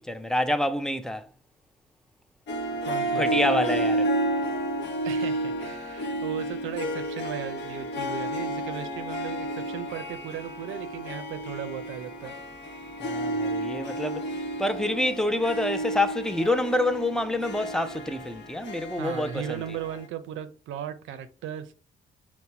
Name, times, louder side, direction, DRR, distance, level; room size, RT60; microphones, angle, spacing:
voice 1, 0.1-1.3 3.2-4.1 13.0-14.3 14.6-19.6, left 1 dB, 5° left, 0.4 m, -27 dB
Harp, 2.5-20.1, right 1 dB, 60° left, 0.9 m, -31 dB
voice 2, 2.8-3.6 5.0-12.4 19.0-21.7, right 9 dB, 80° right, 0.6 m, -37 dB
4.1 x 2.1 x 4.4 m
cardioid pair, 90°, 20 cm